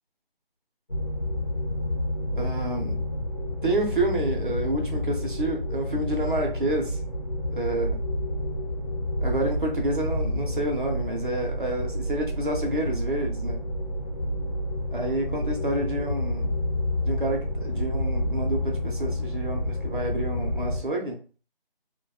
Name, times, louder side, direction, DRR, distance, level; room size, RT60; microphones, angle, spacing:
sound 1, 0.9-20.8, left 1 dB, 40° left, 0.4 m, -29 dB
voice 1, 2.3-3.0 3.6-7.0 7.5-8.0 9.2-13.6 14.9-16.6 17.0-21.2, right 1 dB, 55° right, 1 dB, 0.7 m, -29 dB
2.6 x 2.2 x 2.2 m, 0.37 s
figure-of-eight pair, 170°, 30 cm